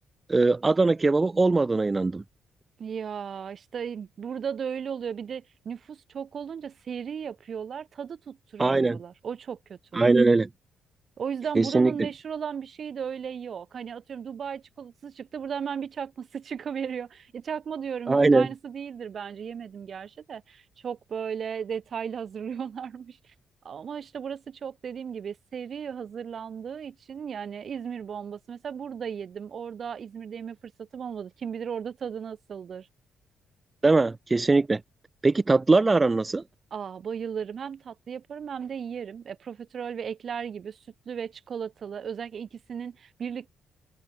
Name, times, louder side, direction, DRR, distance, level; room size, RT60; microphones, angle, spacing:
voice 1, 0.3-2.2 8.6-9.0 9.9-10.5 11.6-12.1 18.1-18.5 33.8-34.8 35.2-36.4, right 3 dB, 25° right, 0.9 m, -21 dB
voice 2, 2.8-10.2 11.2-23.3 23.6-32.9 36.7-43.5, right 7 dB, 50° right, 2.6 m, -36 dB
cardioid pair, 90°, 0 cm